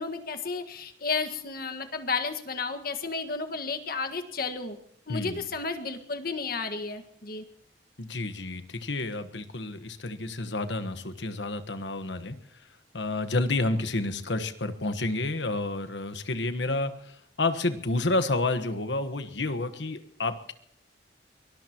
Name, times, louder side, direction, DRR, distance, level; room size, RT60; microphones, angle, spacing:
voice 1, 0.0-4.8 5.1-7.4, left 4 dB, 60° left, 7 dB, 1.7 m, -32 dB
voice 2, 5.1-5.4 8.0-12.4 12.9-20.5, left 2 dB, 80° left, 9 dB, 1.3 m, -30 dB
23.5 x 19.5 x 3.0 m, 0.74 s
head